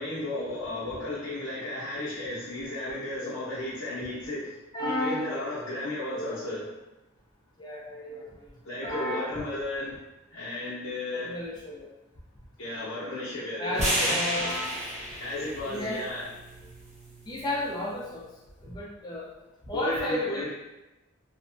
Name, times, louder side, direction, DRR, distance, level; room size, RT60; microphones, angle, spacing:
voice 1, 0.0-6.7 8.6-10.0 10.3-11.3 12.6-14.2 15.2-16.2 19.7-20.5, left 1 dB, 70° left, -10 dB, 0.7 m, -34 dB
voice 2, 4.7-5.4 6.1-6.7 7.6-8.5 8.8-9.5 11.1-11.9 13.6-14.9 15.6-16.0 17.3-18.3 18.6-19.3 19.7-20.5, left 1 dB, 20° left, -4 dB, 0.5 m, -33 dB
sound 1, 13.7-17.9, equal, 35° right, 0.9 m, -32 dB
3.1 x 2.1 x 2.5 m, 1.0 s
head